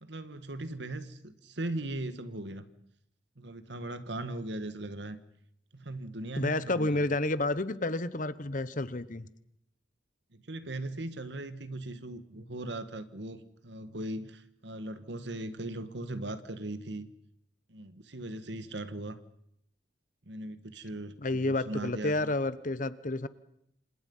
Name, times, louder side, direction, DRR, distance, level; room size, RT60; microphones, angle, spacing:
voice 1, 0.0-2.6 3.4-5.2 5.7-7.2 10.3-17.1 17.7-19.2 20.2-22.3, right 1 dB, 65° right, 12 dB, 1.7 m, -39 dB
voice 2, 6.4-9.3 21.2-23.3, left 2 dB, 45° left, 15 dB, 1.0 m, -30 dB
27.5 x 26.0 x 5.6 m, 0.76 s
head